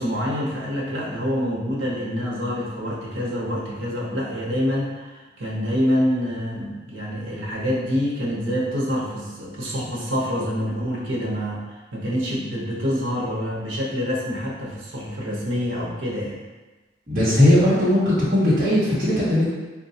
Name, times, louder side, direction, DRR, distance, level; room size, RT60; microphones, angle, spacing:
voice 1, 0.0-16.4, equal, 90° right, -4 dB, 0.8 m, -26 dB
voice 2, 17.1-19.5, left 1 dB, 40° right, -10 dB, 1.0 m, -18 dB
4.0 x 2.2 x 2.7 m, 1.2 s
head